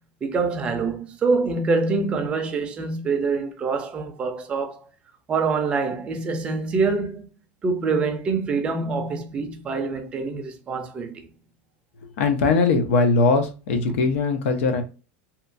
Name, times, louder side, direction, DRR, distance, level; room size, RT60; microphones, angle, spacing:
voice 1, 0.2-4.8 5.3-7.3 7.6-11.3 13.9-14.0, right 4 dB, 15° right, 0.4 m, -25 dB
voice 2, 12.0-14.8, left 3 dB, 90° left, 0.7 m, -20 dB
2.9 x 2.2 x 2.5 m
supercardioid pair, 180°, 7 cm